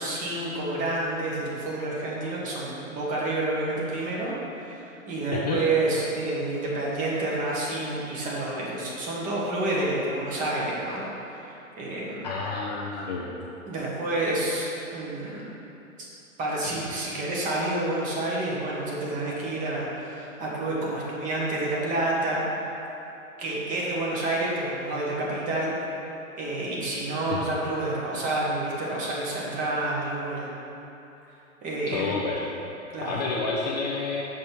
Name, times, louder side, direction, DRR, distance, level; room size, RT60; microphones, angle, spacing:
voice 1, 0.0-11.0 11.4-12.3 13.2-13.3 13.7-15.5 16.4-22.5 23.4-25.7 26.4-30.5 31.6-32.2 32.9-33.2, right 2 dB, 20° right, -5 dB, 1.2 m, -29 dB
voice 2, 12.2-13.3 27.3-27.4 31.9-32.4 33.0-34.2, left 4 dB, 30° left, -3 dB, 0.5 m, -29 dB
6.5 x 5.3 x 4.5 m, 2.9 s
figure-of-eight pair, 125°, 42 cm